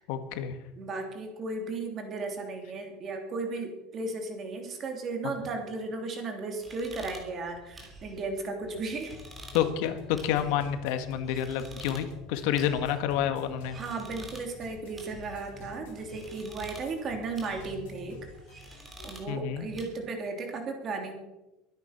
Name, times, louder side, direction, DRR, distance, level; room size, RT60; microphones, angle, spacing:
voice 1, 0.1-0.6 9.5-13.8 19.3-19.7, left 10 dB, 65° left, 8 dB, 1.7 m, -29 dB
voice 2, 0.8-9.2 13.7-18.2 19.0-21.1, right 3 dB, 30° right, 3 dB, 2.9 m, -35 dB
sound 1, 6.6-19.9, right 1 dB, 10° right, 3.2 m, -49 dB
sound 2, 8.7-19.0, left 3 dB, 85° left, 4.0 m, -49 dB
23.0 x 9.7 x 5.9 m, 1.0 s
cardioid pair, 170°, 0 cm